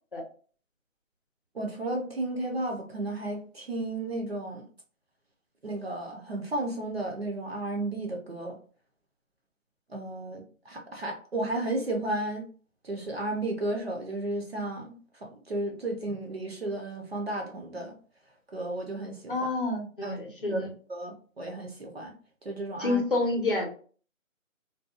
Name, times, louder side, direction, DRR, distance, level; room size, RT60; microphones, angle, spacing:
voice 1, 1.5-4.7 5.6-8.6 9.9-12.5 12.8-15.0 15.5-17.9 18.5-19.3 20.0-20.2 20.5-22.1 22.4-23.0, right 2 dB, 50° right, 2 dB, 0.6 m, -33 dB
voice 2, 19.3-20.7 22.8-23.7, left 2 dB, 40° left, 1 dB, 0.7 m, -28 dB
2.6 x 2.2 x 2.3 m, 0.42 s
figure-of-eight pair, 165°, 41 cm